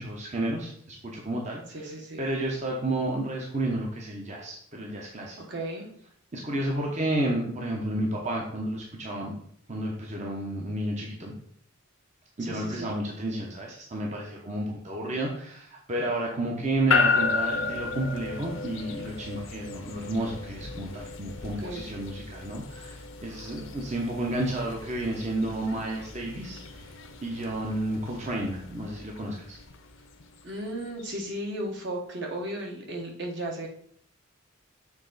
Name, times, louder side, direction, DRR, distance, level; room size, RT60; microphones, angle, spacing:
voice 1, 0.0-1.9 2.2-5.4 6.3-9.3 9.7-11.3 12.4-29.6, right 1 dB, 35° right, -1 dB, 0.8 m, -31 dB
voice 2, 1.7-2.2 5.5-5.9 12.4-13.0 21.6-21.8 30.4-33.7, right 1 dB, 60° right, 0 dB, 1.4 m, -35 dB
sound 1, 16.9-31.2, left 4 dB, 70° left, 0.7 m, -33 dB
7.2 x 3.8 x 4.0 m, 0.65 s
head